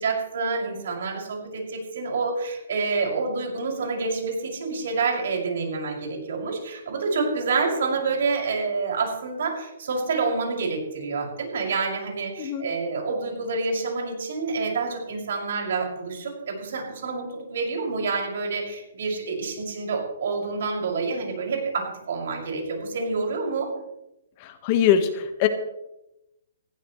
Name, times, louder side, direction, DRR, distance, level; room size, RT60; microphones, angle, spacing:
voice 1, 0.0-23.7, right 4 dB, 60° right, 0 dB, 6.4 m, -28 dB
voice 2, 24.4-25.5, left 9 dB, 30° left, 8 dB, 1.5 m, -22 dB
19.5 x 16.0 x 3.3 m, 0.91 s
hypercardioid pair, 165°, 0 cm